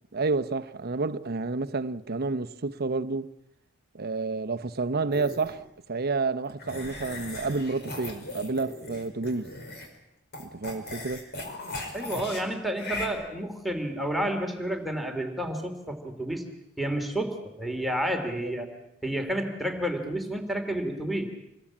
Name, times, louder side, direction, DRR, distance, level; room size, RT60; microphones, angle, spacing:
voice 1, 0.1-3.3 3.9-9.5 10.4-11.2 18.4-18.5, right 3 dB, 50° right, 0.9 m, -30 dB
sound 1, 5.1-5.6 6.6-10.0 10.3-12.4 12.7-13.1, left 2 dB, 50° left, 5.1 m, -38 dB
voice 2, 11.9-16.4 16.8-18.7 19.0-21.3, right 1 dB, ahead, 2.7 m, -30 dB
27.0 x 21.0 x 8.7 m
head